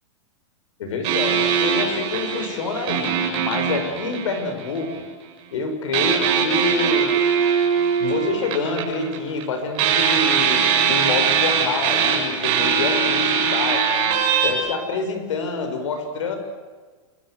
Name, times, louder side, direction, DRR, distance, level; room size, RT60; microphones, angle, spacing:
voice 1, 0.8-5.0 5.5-7.1 8.0-13.8 14.4-16.4, left 4 dB, 70° left, 6 dB, 7.0 m, -27 dB
sound 1, 1.0-4.9 5.9-9.4 9.7-14.5, right 7 dB, 30° right, 7.0 m, -21 dB
27.5 x 25.0 x 8.2 m, 1.4 s
supercardioid pair, 170°, 16 cm